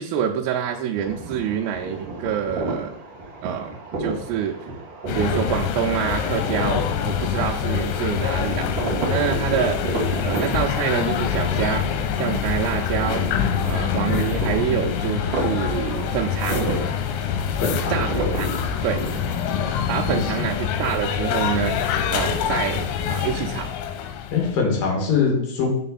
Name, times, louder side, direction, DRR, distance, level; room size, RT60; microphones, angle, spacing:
voice 1, 0.0-3.0 3.4-4.7 5.1-11.9 12.1-13.2 13.6-16.8 17.9-18.1 18.3-18.5 18.8-19.0 19.9-21.8 22.1-23.7, right 8 dB, 90° right, 0 dB, 3.4 m, -26 dB
sound 1, 0.9-20.2, right 2 dB, 55° right, 1.6 m, -32 dB
sound 2, 5.1-24.6, left 8 dB, 85° left, 3.3 m, -25 dB
voice 2, 17.6-18.0 24.3-25.7, left 5 dB, 55° left, 0 dB, 3.2 m, -22 dB
7.7 x 6.4 x 4.1 m, 0.77 s
omnidirectional pair, 5.9 m